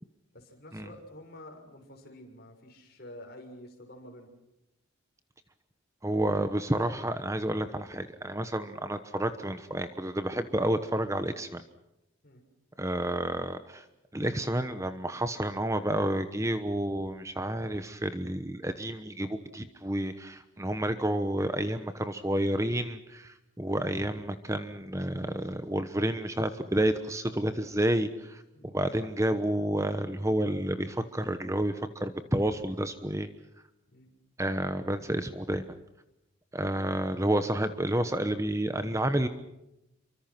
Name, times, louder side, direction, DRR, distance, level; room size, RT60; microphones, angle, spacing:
voice 1, 0.3-4.3 12.2-12.4 23.6-23.8 28.5-28.7 33.9-34.1, left 1 dB, 50° left, 3 dB, 6.3 m, -49 dB
voice 2, 6.0-11.6 12.8-13.8 14.1-33.3 34.4-35.7 36.5-39.3, right 1 dB, 15° right, 10 dB, 1.1 m, -30 dB
28.0 x 24.5 x 6.0 m, 0.89 s
head